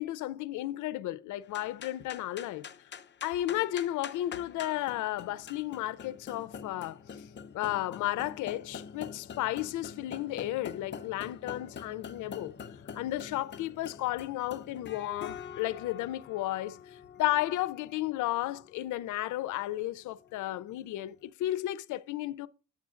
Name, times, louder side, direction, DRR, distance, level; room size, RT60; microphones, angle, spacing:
voice 1, 0.0-2.7 3.2-7.0 7.5-12.5 12.9-16.8 17.2-22.5, left 15 dB, 80° left, 0.5 m, -33 dB
sound 1, 1.4-21.0, left 7 dB, 35° left, 0.6 m, -46 dB
9.1 x 7.4 x 2.5 m
cardioid pair, 90°, 30 cm